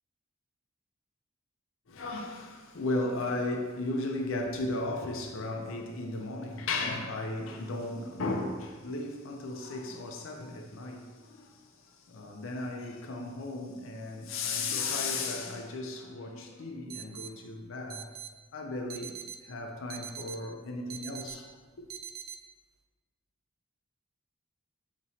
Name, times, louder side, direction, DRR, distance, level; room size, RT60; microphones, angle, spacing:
voice 1, 1.9-11.6 11.9-18.0 18.5-19.2 19.4-21.5 21.8-21.9, left 2 dB, 75° left, 0.5 m, -35 dB
sound 1, 16.9-17.3 17.9-18.3 18.9-19.4 19.9-20.4 20.9-21.4 21.9-22.4, right 9 dB, 90° right, 0.3 m, -42 dB
5.6 x 2.9 x 2.7 m
head